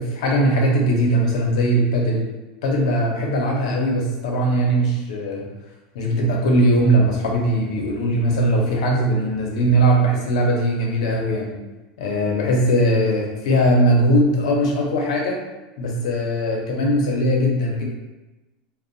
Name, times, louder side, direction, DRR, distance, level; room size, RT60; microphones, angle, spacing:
voice 1, 0.0-2.3 2.6-5.5 5.9-11.6 12.0-15.4 15.8-17.8, right 1 dB, 85° left, -1 dB, 0.6 m, -20 dB
2.6 x 2.1 x 2.6 m, 1.1 s
supercardioid pair, 140°, 3 cm